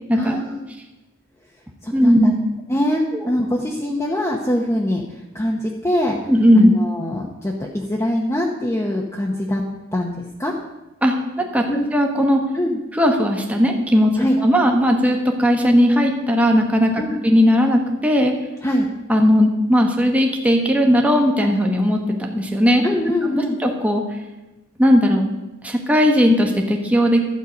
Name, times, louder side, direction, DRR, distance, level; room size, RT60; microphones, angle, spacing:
voice 1, 0.1-0.7 1.8-2.3 2.7-5.0 5.3-6.2 6.5-9.6 9.9-10.5 11.7-11.9 12.5-12.8 14.2-14.4 17.0-17.2 18.6-18.9 22.8-23.6, left 1 dB, 15° left, -1 dB, 0.9 m, -23 dB
voice 2, 1.9-2.4 3.1-3.2 6.3-6.7 11.0-11.6 11.9-12.4 12.9-18.3 19.1-22.8 23.3-24.0 24.8-25.3 25.6-27.2, equal, 5° right, 1 dB, 1.1 m, -17 dB
12.0 x 8.0 x 5.1 m, 1.1 s
head